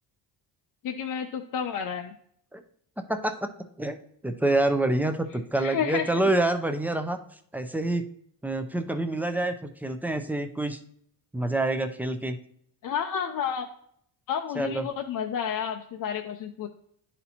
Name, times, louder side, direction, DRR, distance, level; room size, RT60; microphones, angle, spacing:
voice 1, 0.8-2.1 5.6-6.1 12.8-13.7 14.3-16.7, left 7 dB, 55° left, 4 dB, 0.5 m, -30 dB
voice 2, 3.0-3.5 3.8-4.0 4.2-7.2 7.5-8.0 8.4-10.8 11.3-12.4 14.6-14.9, right 2 dB, 5° right, 7 dB, 0.4 m, -27 dB
10.5 x 4.3 x 2.8 m, 0.67 s
cardioid pair, 110°, 41 cm